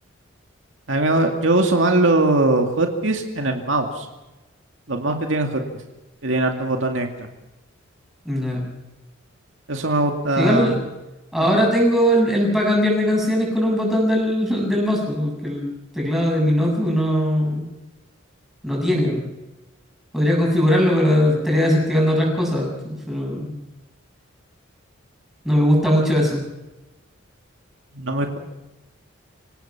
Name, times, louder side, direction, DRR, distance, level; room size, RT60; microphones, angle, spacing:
voice 1, 0.9-4.1 4.9-5.6 6.2-7.1 9.7-10.8 27.9-28.4, right 2 dB, 65° right, 4 dB, 2.2 m, -20 dB
voice 2, 8.3-8.7 10.4-10.8 11.3-15.7 15.9-17.6 18.6-19.2 20.1-23.5 25.4-26.4, equal, ahead, -2 dB, 7.5 m, -20 dB
27.0 x 18.0 x 6.0 m, 1.0 s
head